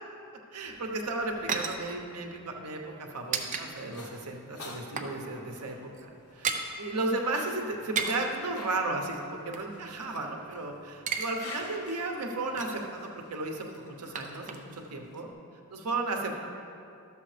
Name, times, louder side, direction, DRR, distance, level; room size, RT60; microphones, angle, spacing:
voice 1, 0.5-15.3 15.7-16.5, right 2 dB, 85° right, 2 dB, 1.0 m, -34 dB
sound 1, 0.7-3.7 4.0-4.1 4.5-5.2 5.4-5.6 5.9-6.7 7.7-8.4 9.1-10.6 10.8-11.3 11.6-11.7 12.1-12.9 13.6-14.9 15.1-15.2, right 5 dB, 35° right, 0.5 m, -36 dB
sound 2, 3.1-15.3, left 2 dB, 80° left, 1.2 m, -49 dB
11.5 x 7.1 x 3.3 m, 2.5 s
head